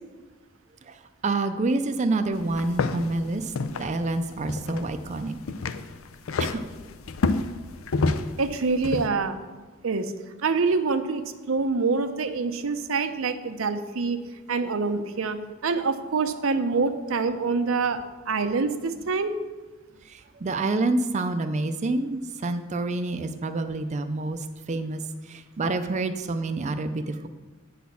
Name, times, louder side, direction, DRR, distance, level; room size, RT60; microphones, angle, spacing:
voice 1, 1.2-5.4 6.4-6.7 20.1-25.0 25.3-27.3, right 2 dB, 35° right, 8 dB, 0.4 m, -28 dB
sound 1, 2.3-9.1, left 3 dB, 90° left, 0.5 m, -30 dB
voice 2, 8.4-9.4 9.8-10.1 10.4-11.2 11.5-14.2 14.5-15.4 15.6-19.3, right 4 dB, 85° right, 9 dB, 0.6 m, -25 dB
8.5 x 4.1 x 6.8 m, 1.3 s
head